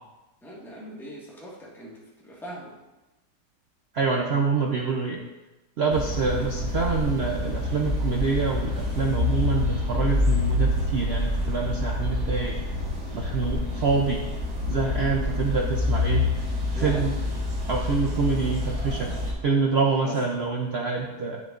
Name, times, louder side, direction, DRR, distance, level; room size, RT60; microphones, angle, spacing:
voice 1, 0.4-2.7 6.4-6.5 16.7-17.1 20.0-20.2, right 1 dB, ahead, -6 dB, 1.5 m, -40 dB
voice 2, 3.9-5.2 5.8-12.6 13.1-14.2 14.7-16.3 16.7-17.1 17.7-19.1 19.4-21.4, right 4 dB, 75° right, 0 dB, 0.5 m, -26 dB
sound 1, 5.9-19.3, left 2 dB, 55° right, 2.2 m, -27 dB
10.5 x 7.1 x 2.5 m, 1.0 s
omnidirectional pair, 1.9 m